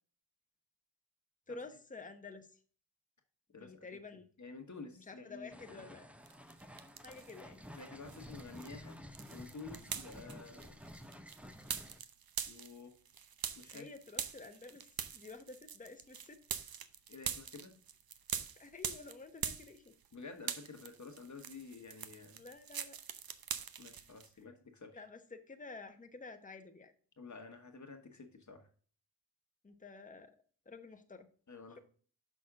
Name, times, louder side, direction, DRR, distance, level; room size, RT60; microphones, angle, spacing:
voice 1, 1.5-2.5 3.5-4.3 5.1-6.1 7.0-7.6 13.7-14.9 15.1-16.4 18.6-19.9 22.4-23.0 24.9-26.9 29.6-30.4 30.7-31.3, left 3 dB, 20° left, 6 dB, 1.0 m, -50 dB
voice 2, 3.5-3.9 4.4-6.0 7.7-9.0 9.3-10.8 12.5-12.9 13.5-13.9 17.1-17.7 20.1-22.4 23.8-25.0 27.2-28.7 31.5-31.8, left 4 dB, 45° left, 4 dB, 1.3 m, -50 dB
sound 1, 5.5-12.0, equal, 5° right, 0.7 m, -52 dB
sound 2, 6.3-7.4 7.8-20.1 20.4-24.3, right 8 dB, 60° right, 0.8 m, -43 dB
6.1 x 6.0 x 3.7 m, 0.43 s
cardioid pair, 65°, 41 cm